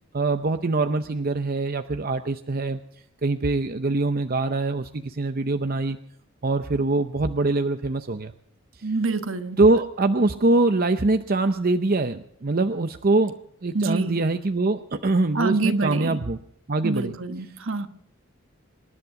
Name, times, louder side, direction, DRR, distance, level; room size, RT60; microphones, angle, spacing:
voice 1, 0.1-2.8 3.2-6.0 6.4-8.3 9.6-13.4 13.6-16.4 16.7-17.1, right 2 dB, 45° right, 8 dB, 0.7 m, -23 dB
voice 2, 8.8-9.6 13.7-14.2 15.3-16.2 16.8-17.9, right 3 dB, 65° right, 9 dB, 1.2 m, -26 dB
26.0 x 11.0 x 4.9 m, 0.69 s
head